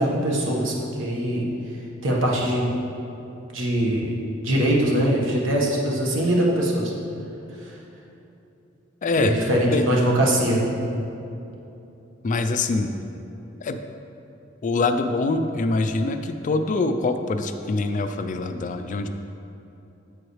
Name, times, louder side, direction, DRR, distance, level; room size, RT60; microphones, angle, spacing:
voice 1, 0.0-1.5 2.0-2.7 3.5-4.2 4.4-6.9 7.6-7.8 9.1-10.6, right 1 dB, 65° right, -3 dB, 1.3 m, -22 dB
voice 2, 9.0-9.3 9.7-10.0 12.2-12.9 13.6-13.8 14.6-19.1, left 3 dB, 40° left, 8 dB, 0.4 m, -24 dB
8.0 x 7.7 x 3.2 m, 2.9 s
head